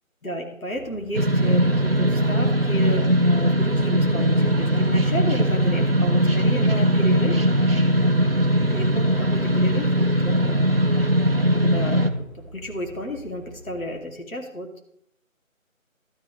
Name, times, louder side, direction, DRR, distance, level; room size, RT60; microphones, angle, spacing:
voice 1, 0.2-7.4 8.7-11.1 11.5-14.8, equal, 75° left, 2 dB, 2.6 m, -32 dB
sound 1, 0.7-13.9, right 1 dB, 5° right, 2.2 m, -45 dB
sound 2, 1.1-12.1, equal, 45° right, 0.7 m, -20 dB
12.0 x 10.0 x 3.2 m, 0.75 s
figure-of-eight pair, 175°, 41 cm